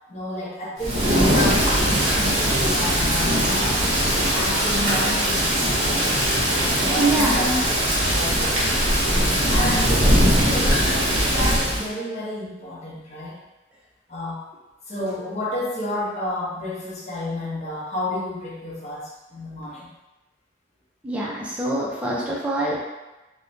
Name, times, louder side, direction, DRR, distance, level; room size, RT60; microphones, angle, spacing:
voice 1, 0.1-3.8 4.3-6.3 6.8-7.5 8.1-8.9 9.5-13.4 14.1-14.4 14.9-19.9, left 1 dB, 40° left, -6 dB, 0.7 m, -31 dB
Thunder / Rain, 0.8-11.9, equal, 40° right, 0.7 m, -20 dB
voice 2, 7.0-7.6 21.0-22.8, right 2 dB, 5° right, -5 dB, 0.4 m, -24 dB
3.0 x 2.1 x 2.6 m, 1.0 s
head